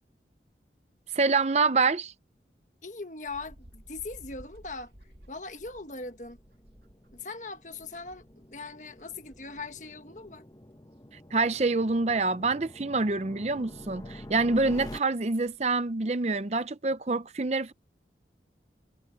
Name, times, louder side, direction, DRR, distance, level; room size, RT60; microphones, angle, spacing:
voice 1, 1.1-2.1 11.3-17.7, right 3 dB, 40° right, 0.6 m, -26 dB
voice 2, 2.8-6.4 7.1-10.4, left 3 dB, 45° left, 1.6 m, -40 dB
sound 1, 3.3-10.4 10.8-11.6 11.9-12.0 12.4-12.5 14.6-14.7 15.0-15.1 15.3-15.8, equal, 65° right, 2.4 m, -55 dB
sound 2, 3.9-15.0, left 1 dB, 20° left, 1.3 m, -48 dB
head